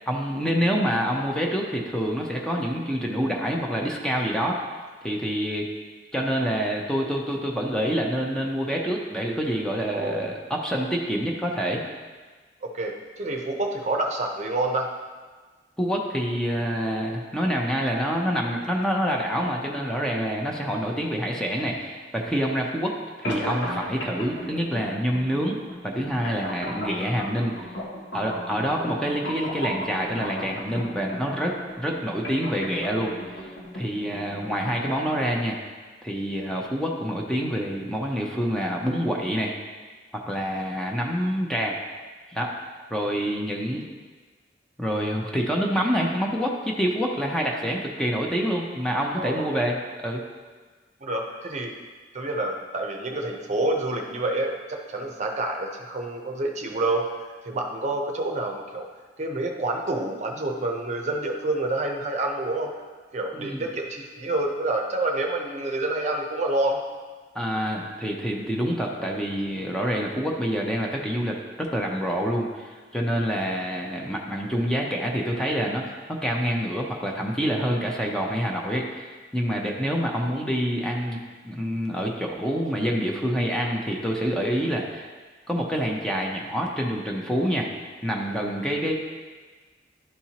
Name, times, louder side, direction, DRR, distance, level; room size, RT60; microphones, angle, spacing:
voice 1, 0.1-4.6 5.0-5.7 6.1-11.8 15.8-27.6 28.1-33.5 33.7-35.6 36.0-39.5 40.3-41.8 42.3-42.5 42.9-43.9 44.8-49.8 50.0-50.2 63.3-63.7 67.3-75.8 76.2-79.1 79.3-85.0 85.5-87.7 88.0-88.9, equal, 5° left, -1 dB, 0.6 m, -27 dB
voice 2, 9.9-10.3 12.6-14.9 28.8-28.9 29.1-29.2 49.2-49.6 51.0-51.7 52.1-58.9 59.2-62.7 63.1-66.8, right 2 dB, 40° right, 2 dB, 0.7 m, -28 dB
sound 1, 23.2-35.2, equal, 85° left, 1.4 m, -36 dB
11.5 x 4.3 x 2.9 m, 1.4 s
head